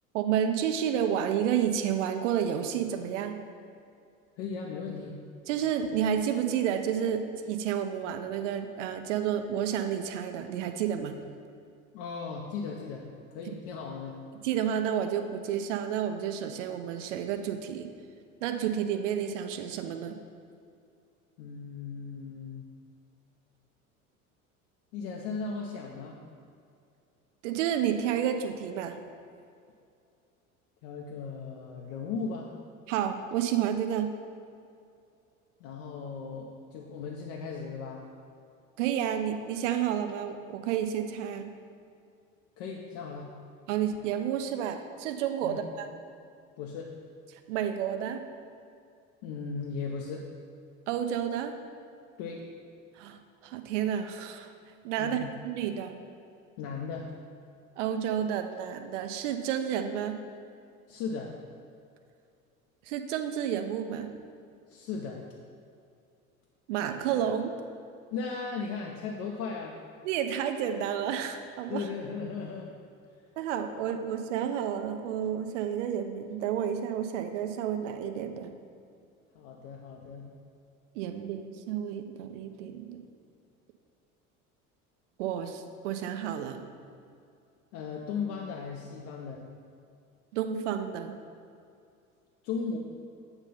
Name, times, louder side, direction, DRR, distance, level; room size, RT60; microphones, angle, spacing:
voice 1, 0.1-3.4 5.5-11.2 14.4-17.9 18.4-20.2 27.4-29.0 32.9-34.1 38.8-41.5 43.7-45.9 47.5-48.3 50.9-51.6 53.0-54.5 54.8-56.0 57.8-60.2 62.9-64.1 66.7-67.6 70.0-71.9 73.4-78.5 80.9-83.0 85.2-86.6 90.3-91.2, right 9 dB, 60° right, 7 dB, 0.6 m, -30 dB
voice 2, 4.4-5.2 11.9-13.0 13.3-14.2 21.4-22.7 24.9-26.2 30.8-32.5 35.6-38.1 42.6-43.3 45.4-45.6 46.6-46.9 49.2-50.3 52.2-52.4 55.0-55.3 56.6-57.1 60.9-61.4 64.7-65.2 68.1-69.8 71.7-72.7 73.7-73.8 79.3-80.3 87.7-89.4 92.4-92.8, left 5 dB, 50° left, -1 dB, 0.7 m, -37 dB
7.9 x 2.7 x 5.5 m, 2.4 s
figure-of-eight pair, 65°, 42 cm